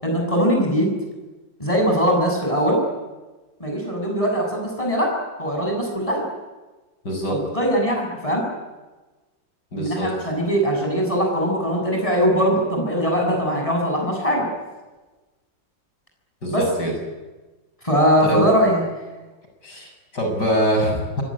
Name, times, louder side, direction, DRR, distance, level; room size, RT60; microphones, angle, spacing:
voice 1, 0.0-0.9 1.6-2.8 3.6-6.2 7.3-8.5 9.7-14.5 16.5-16.6 17.8-18.8, equal, 15° left, 1 dB, 6.9 m, -21 dB
voice 2, 7.0-7.4 9.7-10.1 16.4-16.9 18.2-18.4 19.6-21.2, right 1 dB, 65° left, 3 dB, 7.9 m, -24 dB
26.0 x 21.5 x 9.9 m, 1.2 s
omnidirectional pair, 1.9 m